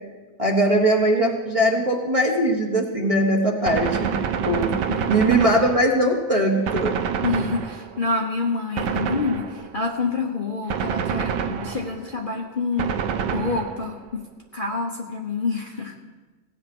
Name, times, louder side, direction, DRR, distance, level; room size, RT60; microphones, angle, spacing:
voice 1, 0.4-4.2 4.4-4.7 5.1-6.9, right 1 dB, 20° right, 0 dB, 1.3 m, -20 dB
Gunshot gunfire, 3.7-6.2 6.7-8.1 8.8-9.8 10.7-12.1 12.8-14.0, right 7 dB, 90° right, 1.4 m, -27 dB
voice 2, 4.9-5.2 7.2-13.0 13.3-15.9, left 3 dB, 35° left, 0 dB, 1.1 m, -27 dB
16.5 x 8.8 x 6.1 m, 1.2 s
omnidirectional pair, 1.8 m